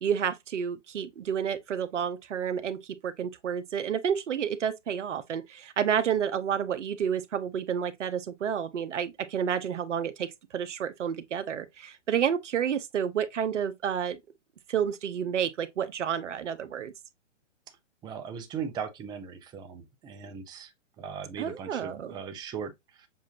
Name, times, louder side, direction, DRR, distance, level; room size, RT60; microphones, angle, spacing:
voice 1, 0.0-14.2 14.7-16.9 21.4-22.1, right 8 dB, 75° right, 0.9 m, -30 dB
voice 2, 18.0-23.1, right 7 dB, 10° right, 0.6 m, -39 dB
7.2 x 2.6 x 2.8 m
hypercardioid pair, 140°, 37 cm